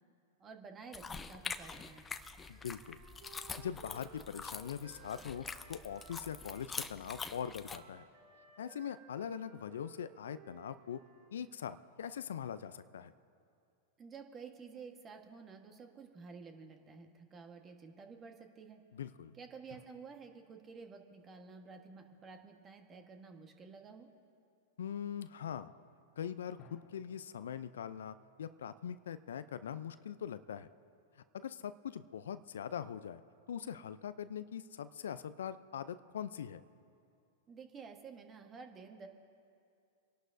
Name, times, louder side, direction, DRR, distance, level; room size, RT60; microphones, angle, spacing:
voice 1, 0.4-2.2 14.0-18.8 19.3-24.1 37.5-39.1, right 5 dB, 25° right, 5 dB, 1.4 m, -51 dB
sound 1, 0.9-7.8, left 5 dB, 15° left, 0.6 m, -45 dB
voice 2, 2.5-3.0 3.6-8.1 8.6-11.0 11.3-13.1 18.9-19.3 24.8-25.7 26.2-30.7 31.2-33.2 33.5-36.6, left 8 dB, 75° left, 13 dB, 0.5 m, -42 dB
Wind instrument woodwind instrument, 2.6-6.7 7.0-11.3, right 5 dB, 65° right, 3.4 m, -59 dB
sound 2, 19.7-22.5 26.6-29.8, left 4 dB, 35° left, 1.6 m, -66 dB
28.5 x 11.5 x 2.7 m, 2.5 s
hypercardioid pair, 105°, 0 cm